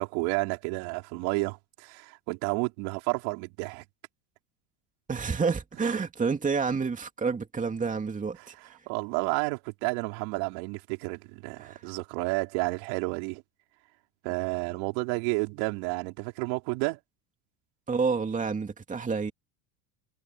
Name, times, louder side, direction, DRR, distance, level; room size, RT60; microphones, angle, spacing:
voice 1, 0.0-3.8 8.4-13.4 14.2-17.0, right 28 dB, 70° right, 5.1 m, -31 dB
voice 2, 5.1-8.7 11.6-11.8 17.9-19.3, right 5 dB, 15° right, 2.5 m, -29 dB
supercardioid pair, 125°, 45 cm